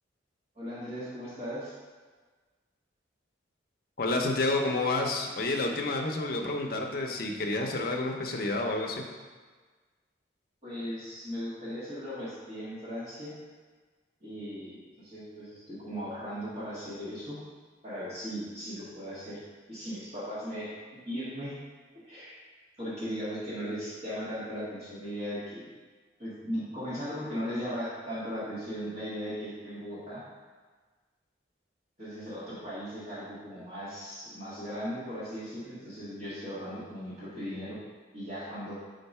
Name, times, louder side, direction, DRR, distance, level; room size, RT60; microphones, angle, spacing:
voice 1, 0.6-1.7 10.6-13.3 14.2-17.4 17.8-19.4 19.7-20.7 21.1-21.5 22.1-22.4 22.8-25.7 26.2-30.2 32.0-37.8 38.1-38.7, equal, 35° right, -11 dB, 1.7 m, -37 dB
voice 2, 4.0-9.0, left 2 dB, 50° left, 2 dB, 0.6 m, -29 dB
4.5 x 3.9 x 5.4 m, 1.4 s
head